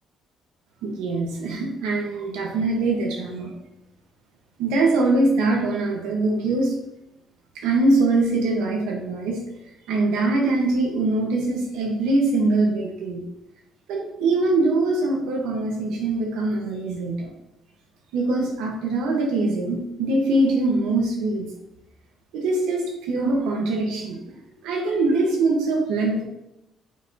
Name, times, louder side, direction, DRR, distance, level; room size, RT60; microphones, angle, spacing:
voice 1, 0.8-3.5 4.6-6.7 7.5-9.4 9.9-13.2 13.9-17.3 18.1-21.5 22.3-24.2 24.6-26.2, right 2 dB, 90° right, 0 dB, 1.4 m, -23 dB
7.9 x 4.4 x 3.0 m, 0.87 s
cardioid pair, 90°, 0 cm